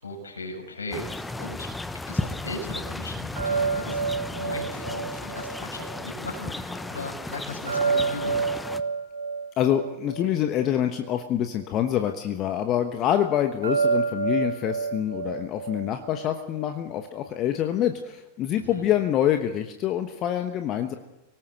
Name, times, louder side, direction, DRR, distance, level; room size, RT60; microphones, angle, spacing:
voice 1, 0.0-1.7 2.1-8.4 18.5-18.9, left 2 dB, 75° left, 3 dB, 6.0 m, -38 dB
sound 1, 0.9-8.8, left 2 dB, 10° left, 1.0 m, -34 dB
sound 2, 3.4-6.4 7.7-11.2 13.6-16.7, right 5 dB, 70° right, 5.2 m, -29 dB
voice 2, 9.6-20.9, left 11 dB, 35° left, 7 dB, 1.2 m, -26 dB
25.5 x 18.0 x 6.7 m, 1.0 s
figure-of-eight pair, 90°, 0 cm